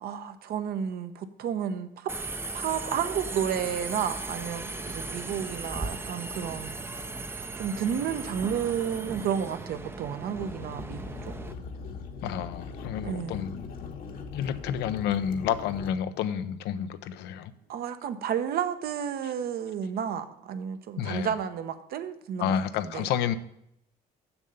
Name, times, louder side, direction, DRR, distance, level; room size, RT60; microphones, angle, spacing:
voice 1, 0.0-2.1 2.5-6.8 7.6-11.3 13.0-13.4 17.7-22.5 22.8-23.1, right 8 dB, 65° right, 10 dB, 0.8 m, -31 dB
Subway metro underground, 2.1-11.5, right 3 dB, 15° right, 0.5 m, -37 dB
sound 1, 10.3-15.9, left 4 dB, 55° left, 1.2 m, -40 dB
voice 2, 12.2-13.7 14.3-17.5 21.0-21.3 22.4-23.3, left 9 dB, 85° left, 11 dB, 0.7 m, -30 dB
7.1 x 6.5 x 7.0 m, 0.77 s
cardioid pair, 110°, 17 cm